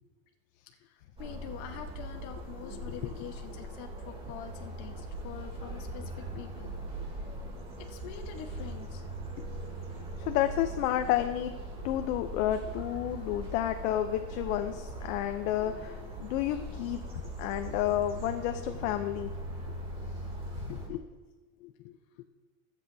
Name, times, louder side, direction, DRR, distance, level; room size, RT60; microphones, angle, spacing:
voice 1, 0.8-6.7 7.8-9.0 9.4-9.5, left 9 dB, 60° left, 3 dB, 1.4 m, -45 dB
sound 1, 1.2-20.9, right 1 dB, 15° right, 2.9 m, -40 dB
voice 2, 10.0-11.6 11.8-17.0 17.4-19.3 20.6-21.1 21.6-22.2, left 12 dB, 80° left, 7 dB, 0.9 m, -31 dB
24.0 x 8.3 x 2.8 m, 1.2 s
supercardioid pair, 145°, 41 cm